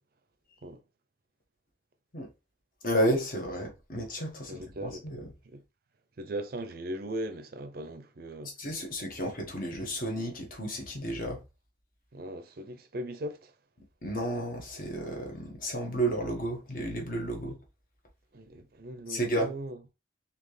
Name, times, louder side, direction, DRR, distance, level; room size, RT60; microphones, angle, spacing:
voice 1, 2.8-5.3 8.6-11.4 14.0-17.6 19.1-19.5, right 1 dB, 45° left, 1.2 m, -32 dB
voice 2, 4.5-5.0 5.5-5.6 6.2-8.5 12.1-13.5 18.3-19.8, right 1 dB, 50° right, 0.5 m, -39 dB
4.1 x 2.8 x 3.2 m
head